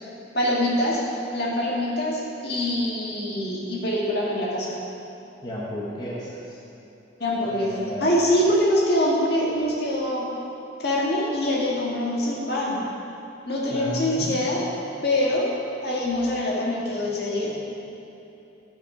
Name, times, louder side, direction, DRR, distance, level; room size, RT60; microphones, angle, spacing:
voice 1, 0.3-4.8 7.2-10.3 10.8-12.8 13.5-14.6 15.0-15.5 15.8-17.5, left 1 dB, 60° left, -4 dB, 1.8 m, -24 dB
voice 2, 5.4-6.6 7.4-8.3 13.7-14.3, equal, 25° left, -6 dB, 1.0 m, -33 dB
11.5 x 5.9 x 5.0 m, 2.9 s
head